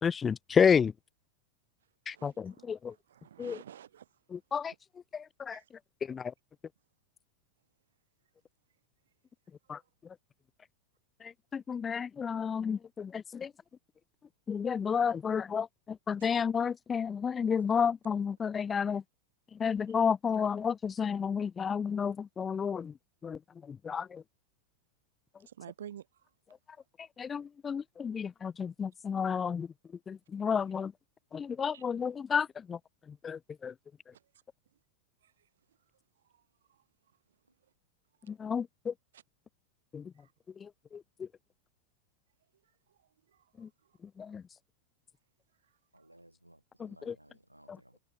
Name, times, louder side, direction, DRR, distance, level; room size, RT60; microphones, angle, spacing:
voice 1, 0.0-0.9 2.1-2.9 3.4-3.6 4.3-4.7 5.1-5.6 6.0-6.3 9.7-9.8 11.2-13.5 14.5-19.0 19.5-22.9 23.2-23.4 23.7-24.2 27.2-29.7 30.1-30.9 31.3-32.8 33.2-33.7 38.3-38.9 39.9-40.1 40.6-41.3 43.6-43.7 44.2-44.4 46.8-47.2 47.7-47.8, left 6 dB, 20° left, 0.4 m, -31 dB
voice 2, 2.1-4.1 5.5-5.6 16.2-16.3 25.5-26.0 31.7-31.8 39.1-39.2, right 10 dB, 65° right, 1.5 m, -49 dB
voice 3, 45.9-48.0, right 1 dB, 85° right, 0.9 m, -60 dB
figure-of-eight pair, 90°, 0 cm